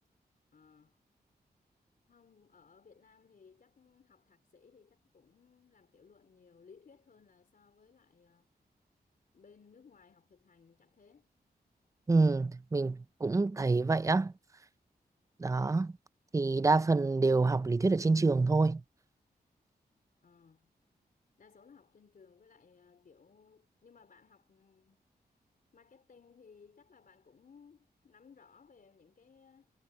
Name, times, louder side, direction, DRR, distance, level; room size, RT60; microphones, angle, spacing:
voice 1, 0.5-1.0 2.1-8.5 9.3-11.3 20.2-20.7 21.4-25.1 25.7-29.7, left 5 dB, 60° left, 3.7 m, -61 dB
voice 2, 12.1-14.3 15.4-15.9 16.3-18.8, right 3 dB, 20° right, 0.4 m, -27 dB
wide cardioid pair, 115°, 17 cm